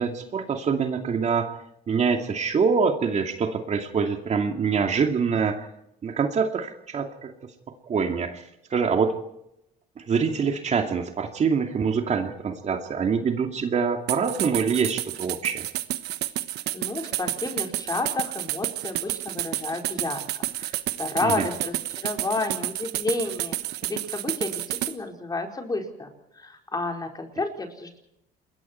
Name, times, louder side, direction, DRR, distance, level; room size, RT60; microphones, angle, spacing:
voice 1, 0.0-1.5 1.9-5.7 6.0-7.3 7.9-8.4 8.7-9.1 10.0-15.6 21.2-21.5, right 5 dB, 40° right, 5 dB, 2.4 m, -25 dB
sound 1, 14.1-24.9, right 15 dB, 80° right, 1.2 m, -30 dB
voice 2, 16.7-23.6 23.8-28.0, left 3 dB, 20° left, 3 dB, 4.6 m, -31 dB
28.5 x 22.0 x 4.5 m, 0.81 s
cardioid pair, 110°, 17 cm